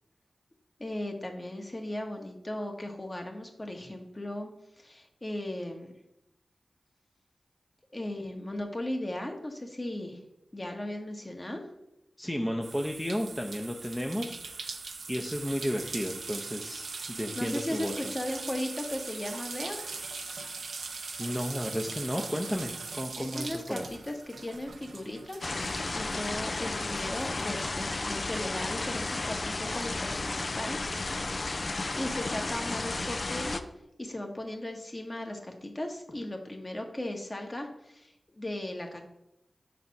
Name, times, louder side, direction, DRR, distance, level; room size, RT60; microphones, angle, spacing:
voice 1, 0.8-4.5 4.8-5.9 7.9-10.2 10.5-11.6 17.4-19.8 23.2-25.6 25.9-33.6 34.0-39.0, left 1 dB, 35° left, 3 dB, 1.2 m, -37 dB
voice 2, 12.2-14.8 15.1-17.9 21.2-23.9, equal, 10° left, 1 dB, 0.7 m, -33 dB
sound 1, 12.6-26.6 27.0-28.2, right 4 dB, 85° right, 0.6 m, -41 dB
sound 2, 25.4-33.6, left 3 dB, 55° left, 0.4 m, -33 dB
5.0 x 4.1 x 5.8 m, 0.84 s
cardioid pair, 40°, 0 cm